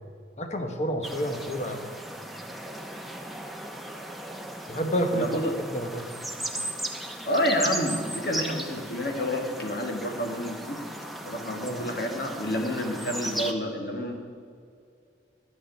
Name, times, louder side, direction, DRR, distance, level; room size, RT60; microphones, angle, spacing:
voice 1, 0.4-1.8 4.7-5.3 5.7-6.0 11.6-11.8, equal, 40° left, 5 dB, 1.1 m, -29 dB
sound 1, 1.0-13.5, right 1 dB, ahead, 0.8 m, -36 dB
voice 2, 5.1-5.5 7.3-10.8 11.2-14.1, equal, 60° left, 3 dB, 1.8 m, -29 dB
11.5 x 6.6 x 9.3 m, 2.3 s
head